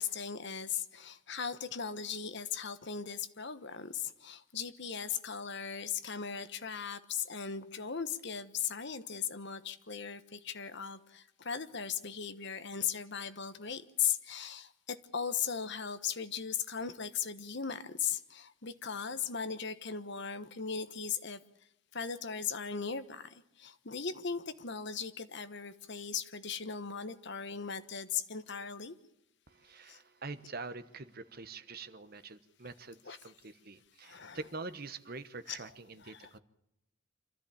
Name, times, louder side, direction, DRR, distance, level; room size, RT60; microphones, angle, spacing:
voice 1, 0.0-21.4 21.9-29.0 29.9-30.0 33.1-33.2 34.0-34.4 35.5-35.6 36.0-36.3, left 7 dB, 55° left, 1.3 m, -38 dB
voice 2, 29.5-36.4, right 3 dB, 45° right, 1.1 m, -45 dB
26.0 x 14.0 x 8.6 m
head